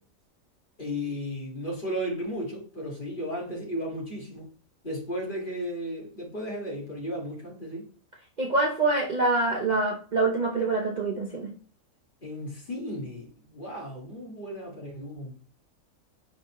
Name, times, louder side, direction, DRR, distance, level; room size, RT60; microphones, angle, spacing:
voice 1, 0.8-4.5 4.8-7.9 12.2-15.4, equal, 40° left, 2.2 m, -34 dB
voice 2, 8.4-11.5, right 3 dB, 40° right, 0.9 m, -25 dB
9.6 x 4.1 x 3.0 m
omnidirectional pair, 1.4 m